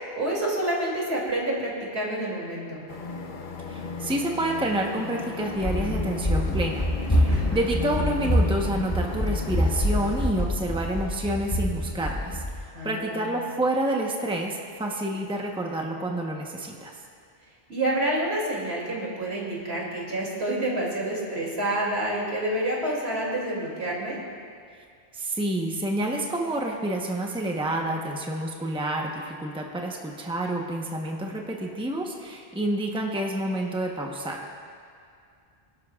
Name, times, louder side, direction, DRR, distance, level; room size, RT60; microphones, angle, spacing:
voice 1, 0.2-2.8 7.3-7.6 12.7-13.4 17.7-24.2, right 1 dB, 80° right, -4 dB, 3.1 m, -28 dB
sound 1, 2.9-10.3, left 5 dB, 55° left, 0.9 m, -35 dB
voice 2, 3.7-12.4 12.8-16.9 25.1-34.6, right 1 dB, 5° right, 0 dB, 1.0 m, -29 dB
Run, 5.6-12.6, equal, 20° left, 1.1 m, -26 dB
26.0 x 12.0 x 2.5 m, 2.3 s
omnidirectional pair, 1.1 m